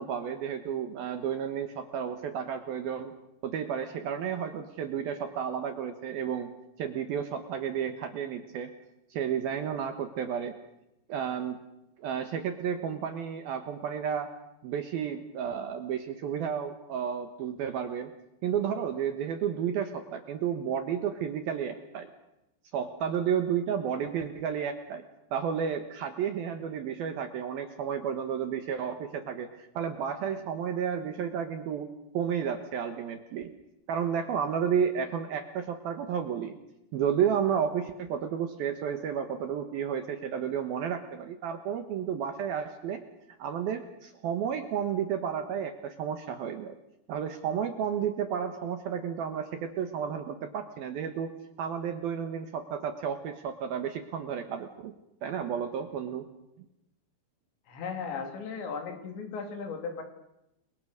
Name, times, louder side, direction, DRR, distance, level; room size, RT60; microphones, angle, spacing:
voice 1, 0.0-3.1 3.4-6.5 6.8-8.7 9.1-10.5 11.1-11.6 12.0-14.3 14.6-18.1 18.4-22.1 22.7-25.0 25.3-33.5 33.9-36.6 36.9-43.0 43.4-46.7 47.1-51.3 51.6-54.9 55.2-56.2, right 8 dB, 65° right, 7 dB, 2.7 m, -32 dB
voice 2, 57.7-60.0, left 5 dB, 65° left, 5 dB, 5.3 m, -36 dB
29.5 x 23.0 x 6.5 m, 0.89 s
omnidirectional pair, 5.5 m